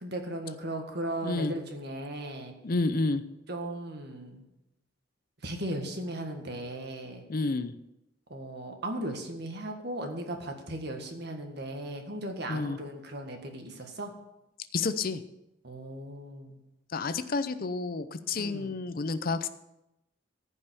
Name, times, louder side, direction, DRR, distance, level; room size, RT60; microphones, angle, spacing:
voice 1, 0.0-2.5 3.5-4.4 5.4-7.2 8.3-14.1 15.6-16.6 18.4-18.8, right 1 dB, 55° right, 4 dB, 1.7 m, -37 dB
voice 2, 1.2-1.5 2.6-3.2 7.3-7.7 12.5-12.8 14.7-15.2 16.9-19.5, left 3 dB, 45° left, 12 dB, 0.6 m, -30 dB
15.0 x 5.5 x 6.9 m, 0.91 s
head